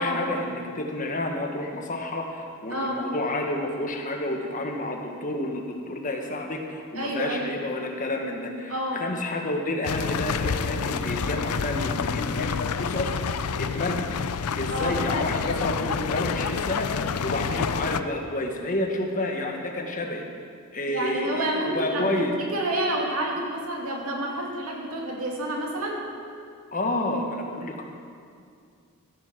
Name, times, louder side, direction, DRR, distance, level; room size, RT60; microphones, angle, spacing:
voice 1, 0.0-14.0 14.5-16.9 17.2-20.2 20.7-22.4 26.7-27.8, left 1 dB, 35° left, 2 dB, 1.5 m, -30 dB
voice 2, 2.7-3.0 6.9-7.5 8.7-9.0 14.7-15.0 20.9-26.0, right 1 dB, 70° right, -1 dB, 2.4 m, -29 dB
sound 1, 9.8-18.0, left 6 dB, 80° left, 0.5 m, -28 dB
14.5 x 9.2 x 6.8 m, 2.3 s
head